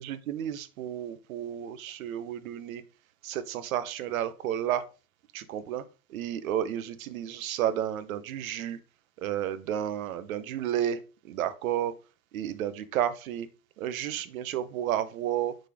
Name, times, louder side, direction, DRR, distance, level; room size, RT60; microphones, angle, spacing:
voice 1, 0.0-2.8 3.2-4.8 5.3-5.8 6.1-8.8 9.2-11.0 11.2-11.9 12.3-13.5 13.8-15.6, right 10 dB, 65° right, 0.9 m, -31 dB
6.4 x 4.2 x 4.7 m
supercardioid pair, 175°, 45 cm